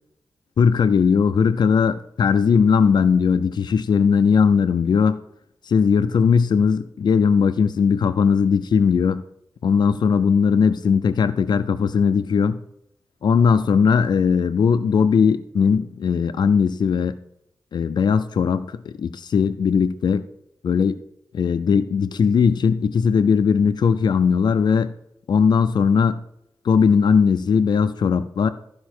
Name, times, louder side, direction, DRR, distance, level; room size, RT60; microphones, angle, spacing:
voice 1, 0.6-5.2 5.6-9.2 9.6-12.6 13.2-17.2 17.7-20.3 20.6-21.0 21.3-24.9 25.3-26.2 26.6-28.5, left 6 dB, 80° left, 10 dB, 0.4 m, -18 dB
13.5 x 5.1 x 4.4 m, 0.77 s
wide cardioid pair, 150°, 7 cm